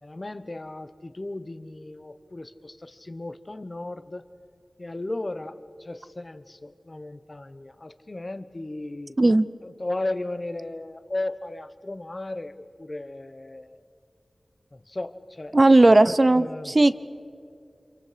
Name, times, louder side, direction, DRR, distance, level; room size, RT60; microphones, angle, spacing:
voice 1, 0.0-4.3 4.8-9.2 9.6-13.8 14.7-15.6 16.3-16.7, left 2 dB, 35° left, 12 dB, 1.0 m, -35 dB
voice 2, 15.5-16.9, right 2 dB, 35° right, 14 dB, 0.7 m, -16 dB
30.0 x 27.0 x 5.1 m, 2.4 s
wide cardioid pair, 85°, 0 cm